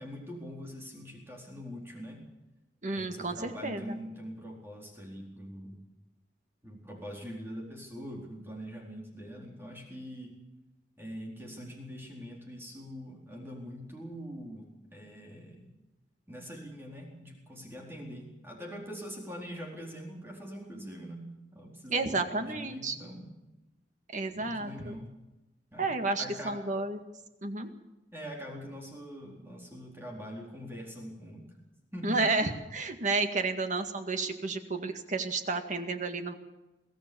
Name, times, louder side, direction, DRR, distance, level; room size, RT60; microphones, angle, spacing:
voice 1, 0.0-2.2 2.9-5.8 6.6-10.4 11.0-15.7 16.3-23.3 24.4-25.1 25.7-25.9 26.2-26.6 28.1-31.5 31.9-32.2, equal, 15° right, -1 dB, 4.2 m, -43 dB
voice 2, 2.8-4.0 21.9-23.0 24.1-24.9 25.8-27.0 27.4-27.7 32.0-36.3, right 3 dB, 45° right, 7 dB, 2.0 m, -31 dB
23.5 x 16.0 x 7.1 m, 1.0 s
head